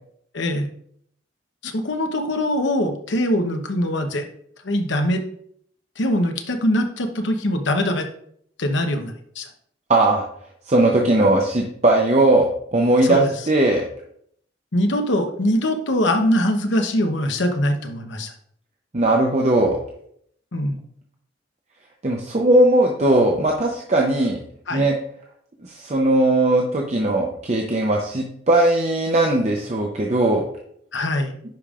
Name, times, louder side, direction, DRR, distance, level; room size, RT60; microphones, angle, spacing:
voice 1, 0.3-0.7 1.6-4.3 4.6-5.2 6.0-8.1 8.6-9.5 13.0-13.3 14.7-18.3 20.5-20.8 24.7-24.9 30.9-31.3, left 1 dB, 70° left, 5 dB, 0.9 m, -22 dB
voice 2, 9.9-10.2 10.7-13.8 18.9-19.8 22.0-24.4 24.7-24.9 25.7-30.5, right 2 dB, 35° right, 0 dB, 0.7 m, -18 dB
10.5 x 5.1 x 2.4 m, 0.66 s
head